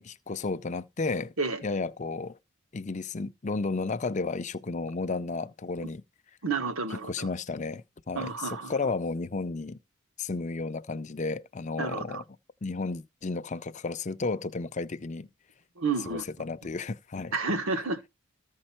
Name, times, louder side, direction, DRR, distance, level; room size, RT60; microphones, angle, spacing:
voice 1, 0.0-1.3 1.6-2.4 2.7-6.0 7.1-9.8 10.2-12.2 12.6-15.3 16.1-17.3, left 3 dB, 35° left, 0.5 m, -33 dB
voice 2, 6.4-7.3 8.1-8.7 11.8-12.2 15.8-16.2 17.3-18.1, right 4 dB, 85° right, 1.5 m, -30 dB
14.5 x 5.3 x 4.4 m
head